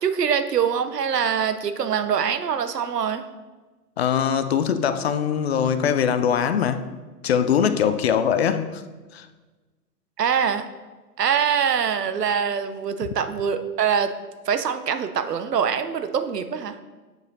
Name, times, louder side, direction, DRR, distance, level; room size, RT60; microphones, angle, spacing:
voice 1, 0.0-3.2 10.2-10.7 11.2-14.1 14.5-16.7, right 7 dB, 75° right, 10 dB, 0.8 m, -24 dB
voice 2, 4.0-6.8 7.2-8.8 9.1-9.3, left 8 dB, 45° left, 10 dB, 0.5 m, -22 dB
7.9 x 4.9 x 4.0 m, 1.2 s
figure-of-eight pair, 115°, 48 cm